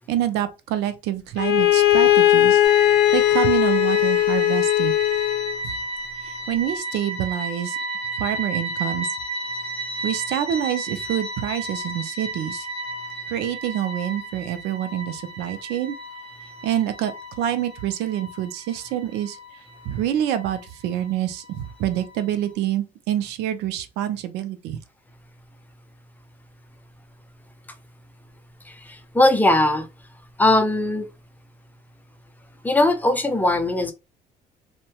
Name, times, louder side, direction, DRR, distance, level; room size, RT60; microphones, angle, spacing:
voice 1, 0.1-2.6 3.1-4.9 6.2-7.8 8.2-9.1 10.0-12.7 13.3-16.0 16.6-17.1 17.4-19.4 19.9-24.8, right 11 dB, 90° right, 0.5 m, -26 dB
Bowed string instrument, 1.4-5.6, left 13 dB, 85° left, 0.5 m, -18 dB
sound 1, 2.6-22.5, right 1 dB, 35° right, 0.8 m, -33 dB
voice 2, 28.7-29.9 30.4-31.1 32.6-33.9, left 2 dB, 10° left, 0.5 m, -19 dB
2.7 x 2.1 x 2.8 m
cardioid pair, 110°, 17 cm